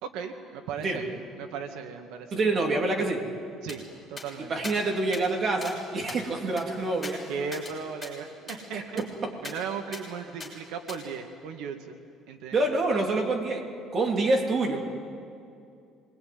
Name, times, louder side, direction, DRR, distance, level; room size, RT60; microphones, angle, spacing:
voice 1, 0.0-2.5 3.6-3.8 4.1-4.5 7.3-9.0 9.4-12.0 12.3-12.6, right 6 dB, 85° right, 5 dB, 1.9 m, -37 dB
voice 2, 2.3-3.2 4.5-7.2 8.7-9.3 12.5-13.7 13.9-14.8, right 2 dB, 30° right, 1 dB, 3.2 m, -27 dB
sound 1, 3.7-3.8 4.2-4.3 4.6-4.8 5.1-5.2 5.6-5.8 6.1-7.7 8.0-8.1 8.5-8.6 9.0-9.1 9.4-9.6 9.9-10.0 10.4-10.5 10.9-11.0, left 3 dB, 10° left, 6.7 m, -41 dB
26.0 x 21.5 x 9.5 m, 2.5 s
cardioid pair, 165°, 0 cm